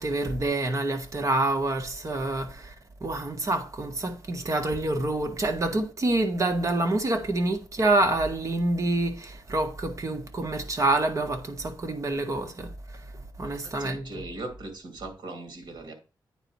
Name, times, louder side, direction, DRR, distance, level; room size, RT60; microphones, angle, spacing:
voice 1, 0.0-2.7 3.0-12.7 13.4-14.2, right 2 dB, 40° right, 1.6 m, -27 dB
voice 2, 13.4-15.9, right 2 dB, 65° right, 2.3 m, -39 dB
9.1 x 4.1 x 4.7 m
wide cardioid pair, 95°, 8 cm